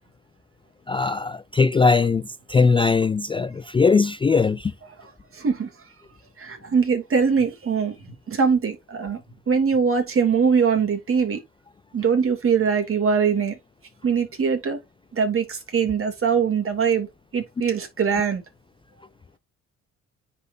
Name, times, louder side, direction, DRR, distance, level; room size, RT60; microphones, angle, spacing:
voice 1, 0.9-4.7, left 4 dB, 15° left, 0.3 m, -20 dB
voice 2, 5.3-5.7 6.4-9.2 9.5-11.4 11.9-13.6 14.0-14.8 15.1-17.1 17.3-18.4, right 6 dB, 45° right, 2.8 m, -22 dB
9.7 x 4.3 x 2.7 m
cardioid pair, 90°, 30 cm